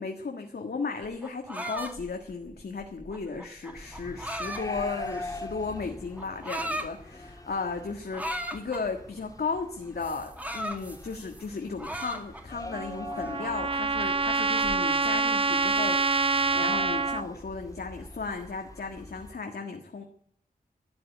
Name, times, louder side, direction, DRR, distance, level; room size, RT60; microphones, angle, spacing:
voice 1, 0.0-20.0, left 4 dB, 85° left, 3 dB, 1.7 m, -35 dB
sound 1, 1.0-5.5 6.2-6.9 8.1-8.8 10.0-11.5 11.8-12.6 13.1-14.8, right 1 dB, 10° right, 2.2 m, -37 dB
sound 2, 3.7-19.3, left 2 dB, 20° left, 1.7 m, -44 dB
Trumpet, 12.7-17.2, right 4 dB, 35° right, 0.6 m, -26 dB
12.5 x 12.5 x 9.2 m, 0.65 s
wide cardioid pair, 95°, 16 cm